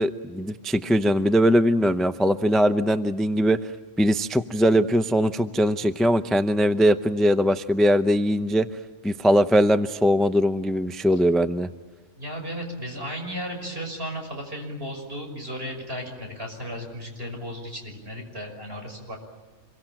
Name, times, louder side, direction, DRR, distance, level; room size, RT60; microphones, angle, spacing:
voice 1, 0.0-3.6 4.0-8.7 9.0-11.7, equal, ahead, 9 dB, 0.5 m, -21 dB
voice 2, 12.2-19.2, equal, 50° right, 2 dB, 6.3 m, -35 dB
27.0 x 23.5 x 8.9 m, 1.3 s
omnidirectional pair, 1.3 m